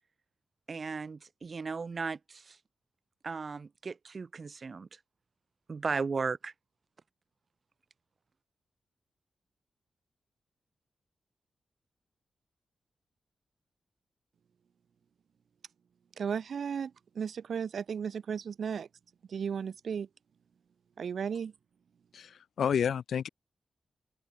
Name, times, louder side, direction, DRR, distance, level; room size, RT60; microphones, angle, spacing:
voice 1, 0.7-2.6 3.2-5.0 5.7-6.5, right 4 dB, 50° right, 0.7 m, -36 dB
voice 2, 16.2-18.9 19.3-20.1 21.0-21.5, right 7 dB, 70° right, 1.0 m, -35 dB
voice 3, 22.1-23.3, left 8 dB, 80° left, 0.8 m, -30 dB
open air
cardioid pair, 60°, 0 cm